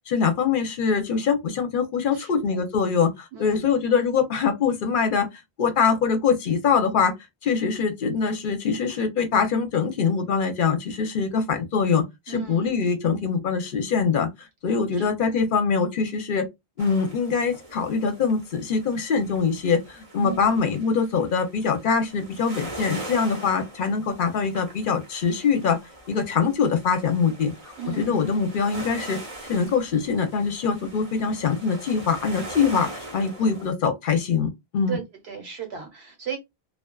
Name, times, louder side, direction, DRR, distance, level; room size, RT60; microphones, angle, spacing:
voice 1, 0.1-5.3 5.6-7.1 7.4-16.5 16.8-25.8 26.1-27.5 28.0-29.2 29.5-35.0, left 5 dB, 60° left, 0.7 m, -23 dB
voice 2, 2.1-2.6 3.3-3.7 12.3-12.8 15.0-15.3 20.2-20.7 27.8-28.3 34.9-36.4, right 7 dB, 85° right, 1.2 m, -36 dB
sound 1, 16.8-33.7, right 1 dB, 40° right, 0.7 m, -41 dB
2.3 x 2.3 x 2.2 m
omnidirectional pair, 1.1 m